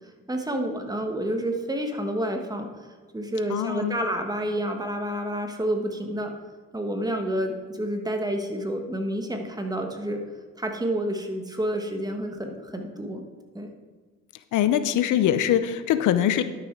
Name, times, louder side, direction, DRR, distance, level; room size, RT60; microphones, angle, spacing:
voice 1, 0.3-2.7 3.1-6.3 6.7-10.2 10.6-13.2 13.5-13.7, right 1 dB, 15° right, 4 dB, 1.4 m, -29 dB
voice 2, 3.5-3.9 14.5-16.4, left 10 dB, 80° left, 12 dB, 0.6 m, -22 dB
11.5 x 6.8 x 4.6 m, 1.4 s
cardioid pair, 90°, 30 cm